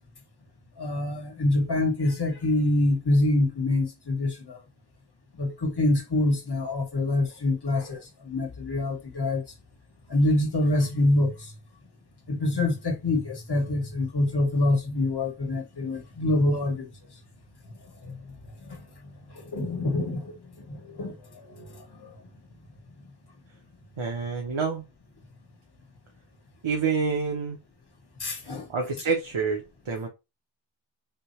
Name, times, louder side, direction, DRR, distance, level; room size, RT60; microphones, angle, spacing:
voice 1, 0.8-4.6 5.4-8.0 8.3-9.4 10.1-11.3 12.3-16.9 19.5-20.2 20.7-21.1 21.6-21.7 28.2-28.6, left 2 dB, 55° left, 1.4 m, -25 dB
voice 2, 24.0-24.8 26.6-27.6 28.7-30.1, right 5 dB, 90° right, 1.0 m, -27 dB
3.7 x 2.8 x 4.3 m
wide cardioid pair, 75°, 47 cm